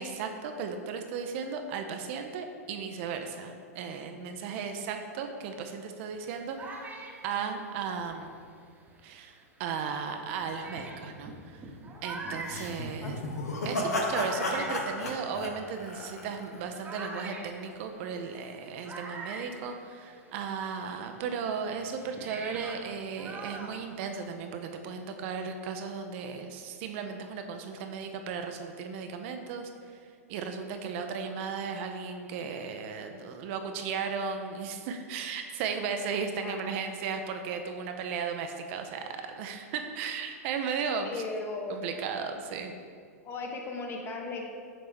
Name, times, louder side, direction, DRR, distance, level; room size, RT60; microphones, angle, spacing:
voice 1, 0.0-6.6 7.2-8.3 9.0-11.6 12.0-13.2 13.6-29.7 30.3-39.0 39.4-41.1 41.7-42.7, right 6 dB, 50° right, 6 dB, 0.5 m, -35 dB
sound 1, 6.1-9.1 9.8-9.9 10.4-20.4 20.7-24.5, right 3 dB, 20° right, 0.8 m, -44 dB
sound 2, 12.4-16.6, left 2 dB, 80° left, 0.9 m, -33 dB
voice 2, 36.4-36.7 41.0-41.9 43.2-44.4, left 3 dB, 25° left, 1 dB, 0.9 m, -37 dB
6.5 x 4.3 x 3.4 m, 2.1 s
hypercardioid pair, 105°, 8 cm